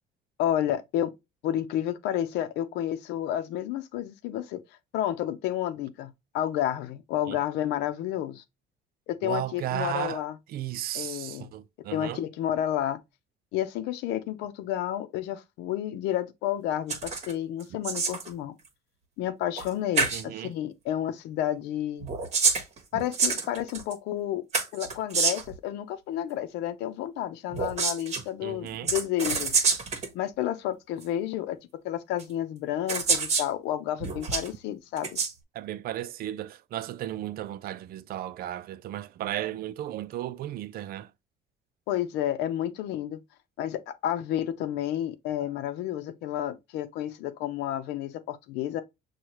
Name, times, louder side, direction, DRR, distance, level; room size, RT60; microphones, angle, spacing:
voice 1, 0.4-1.1 1.4-4.6 4.9-8.4 9.1-10.4 10.9-11.5 11.9-13.0 13.5-18.5 19.2-22.1 22.9-24.4 24.7-29.5 30.1-31.6 31.8-35.2 41.9-43.2 43.6-48.8, left 11 dB, 90° left, 0.7 m, -30 dB
voice 2, 9.2-10.2 10.5-12.2 20.1-20.5 28.4-28.9 35.5-41.1, right 13 dB, 65° right, 0.5 m, -34 dB
sound 1, 16.9-17.3 17.6-18.3 19.6-19.7 20.0-20.2 22.0-23.9 24.5-25.6 27.5-28.2 28.9-30.1 31.0-31.1 32.2-32.3 32.9-33.5 34.0-34.5 35.0-35.3, right 4 dB, 40° right, 1.1 m, -27 dB
6.4 x 2.4 x 2.9 m
cardioid pair, 110°, 17 cm